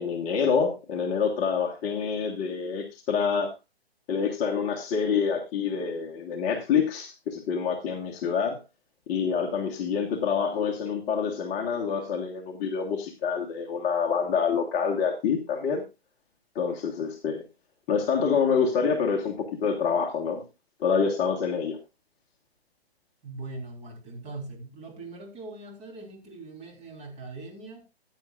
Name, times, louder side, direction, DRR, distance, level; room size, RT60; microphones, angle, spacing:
voice 1, 0.0-3.5 4.1-8.6 9.1-15.8 16.5-17.4 17.9-20.4 20.8-21.8, left 6 dB, 20° left, 1 dB, 1.4 m, -27 dB
voice 2, 23.2-27.9, right 2 dB, 20° right, 1 dB, 3.9 m, -41 dB
15.0 x 9.7 x 2.5 m, 0.25 s
hypercardioid pair, 140°, 31 cm